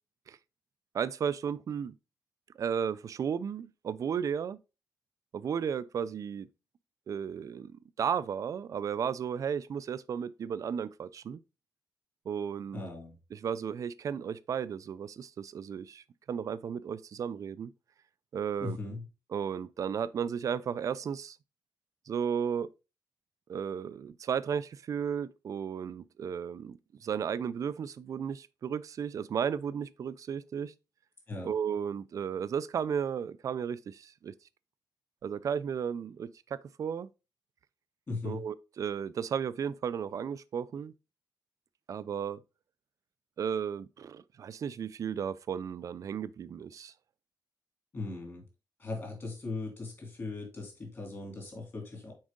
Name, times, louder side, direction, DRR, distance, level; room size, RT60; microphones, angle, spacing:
voice 1, 0.9-1.9 2.6-4.6 5.3-6.5 7.1-7.7 8.0-11.4 12.3-12.8 13.3-17.7 18.3-18.8 19.3-21.4 22.1-22.7 23.5-30.7 31.4-34.3 35.2-37.1 38.2-40.9 41.9-42.4 43.4-46.9, right 7 dB, 50° right, 0.4 m, -34 dB
voice 2, 12.7-13.2 18.6-19.1 31.3-31.5 38.1-38.5 47.9-48.4 48.8-52.1, left 3 dB, 35° left, 2.6 m, -38 dB
6.3 x 4.8 x 3.6 m
wide cardioid pair, 170°, 7 cm